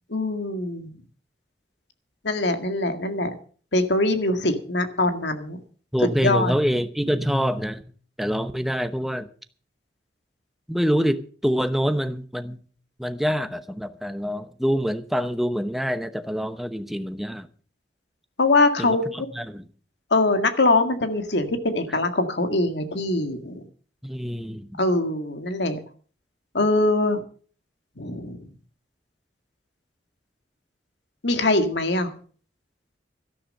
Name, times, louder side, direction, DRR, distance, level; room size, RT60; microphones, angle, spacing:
voice 1, 0.1-0.9 2.2-3.3 3.7-5.6 6.2-6.6 18.4-19.3 20.1-23.7 24.8-25.8 26.5-27.2 28.0-28.4 31.2-32.1, left 2 dB, 80° left, 1.9 m, -23 dB
voice 2, 5.9-7.8 8.2-9.3 10.7-12.6 13.0-17.5 18.8-19.6 24.0-24.8, equal, ahead, 0.8 m, -26 dB
13.5 x 12.0 x 5.4 m
head